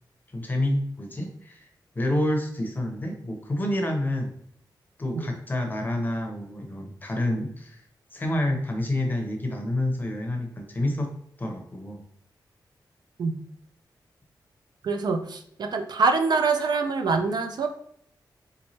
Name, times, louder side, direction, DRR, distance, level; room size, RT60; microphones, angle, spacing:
voice 1, 0.3-1.7 1.9-4.3 5.0-7.8 8.1-11.1 11.4-12.0, left 1 dB, 25° left, 2 dB, 0.6 m, -28 dB
voice 2, 14.8-17.7, right 4 dB, 65° right, 6 dB, 0.4 m, -25 dB
3.3 x 3.0 x 2.7 m, 0.68 s
wide cardioid pair, 155°, 8 cm